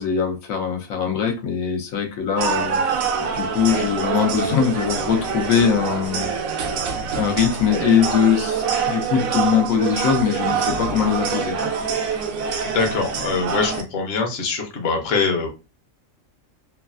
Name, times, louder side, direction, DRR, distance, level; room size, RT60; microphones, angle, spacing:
voice 1, 0.0-3.1 3.3-6.4 7.1-11.7, left 7 dB, 85° left, 1.1 m, -21 dB
sound 1, 2.4-13.8, right 6 dB, 85° right, 1.0 m, -25 dB
voice 2, 12.6-15.5, left 4 dB, 55° left, 0.8 m, -23 dB
3.1 x 2.3 x 2.3 m
omnidirectional pair, 1.4 m